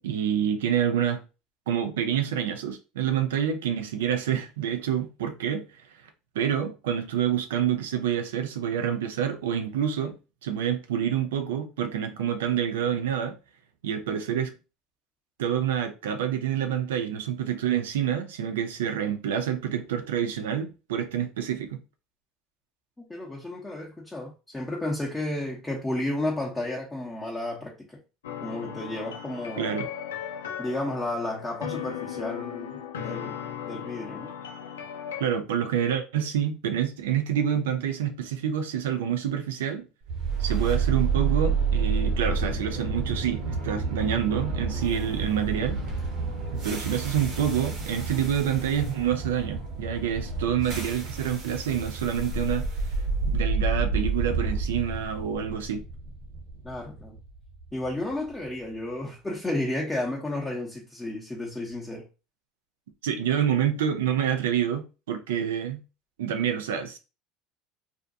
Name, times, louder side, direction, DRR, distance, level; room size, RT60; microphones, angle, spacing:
voice 1, 0.0-1.2 1.7-5.6 6.4-10.2 10.4-13.3 13.8-14.5 15.4-21.8 29.6-29.9 35.2-39.9 40.4-45.8 46.6-52.7 53.2-55.8 63.0-65.8 66.2-67.0, right 9 dB, 80° right, 0.4 m, -27 dB
voice 2, 23.0-28.0 28.4-29.8 30.6-33.4 33.7-34.3 56.6-57.2 57.7-62.0, left 1 dB, 10° left, 0.7 m, -32 dB
sound 1, 28.2-35.2, left 9 dB, 85° left, 0.4 m, -37 dB
sound 2, 40.1-58.2, right 4 dB, 60° right, 1.0 m, -29 dB
2.5 x 2.2 x 2.6 m
hypercardioid pair, 80°, 0 cm